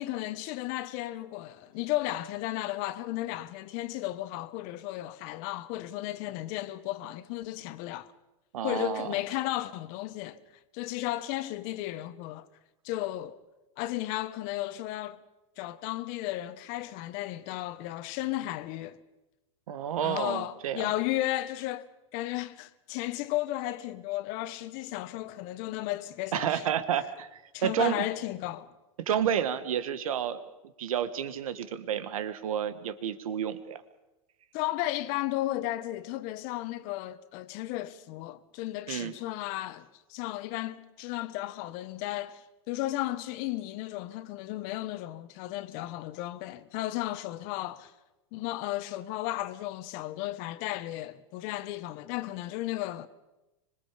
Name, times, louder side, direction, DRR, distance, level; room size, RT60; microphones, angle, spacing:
voice 1, 0.0-8.1 8.6-10.4 10.7-12.5 12.8-13.4 13.8-15.2 15.6-19.0 20.0-21.9 22.1-26.6 27.5-28.7 34.5-47.9 48.3-53.1, left 16 dB, 50° left, 1.4 m, -34 dB
voice 2, 8.5-9.1 19.7-20.9 26.3-28.0 29.0-30.4 30.8-33.8 38.9-39.1, right 9 dB, 85° right, 1.8 m, -30 dB
25.5 x 22.5 x 5.2 m
hypercardioid pair, 125°, 17 cm